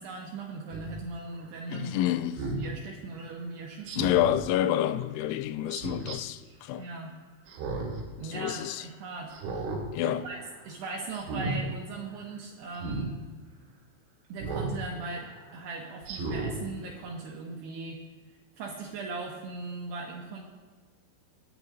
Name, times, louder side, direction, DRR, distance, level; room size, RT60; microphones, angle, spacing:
voice 1, 0.0-4.1 6.8-7.2 8.2-9.3 10.0-13.2 14.3-18.0 18.3-20.4, right 3 dB, 80° right, 2.4 m, -39 dB
Speech synthesizer, 0.7-0.9 2.4-2.6 3.9-4.4 5.7-6.2 7.5-8.0 8.4-8.5 9.3-9.8 10.2-10.5 11.1-11.6 12.8-13.1 14.4-14.8 15.2-15.3 16.0-16.5 17.0-17.1, right 3 dB, 60° right, 3.8 m, -34 dB
voice 2, 1.7-2.5 4.0-6.9 8.2-8.9 9.9-10.3, left 12 dB, 85° left, 3.2 m, -28 dB
25.0 x 9.5 x 2.7 m
omnidirectional pair, 6.0 m